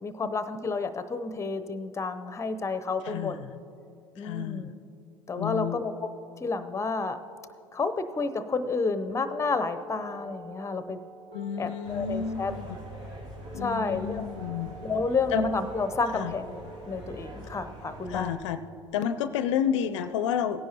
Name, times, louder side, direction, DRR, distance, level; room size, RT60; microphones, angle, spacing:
voice 1, 0.0-3.4 4.2-4.7 5.3-5.9 6.4-7.2 7.7-11.0 11.6-12.5 13.5-14.2 14.8-16.6 16.9-18.4, left 4 dB, 20° left, 12 dB, 0.6 m, -30 dB
voice 2, 3.0-3.5 4.2-4.7 5.4-5.8 11.3-12.8 13.5-14.8 15.3-15.5 16.1-16.3 18.1-18.6 18.9-20.6, left 8 dB, 70° left, 12 dB, 0.4 m, -30 dB
sound 1, 9.1-19.1, right 2 dB, 40° right, 2.5 m, -48 dB
sound 2, 11.8-18.4, right 1 dB, 85° right, 2.4 m, -43 dB
17.5 x 10.0 x 2.9 m, 2.7 s
hypercardioid pair, 75°, 16 cm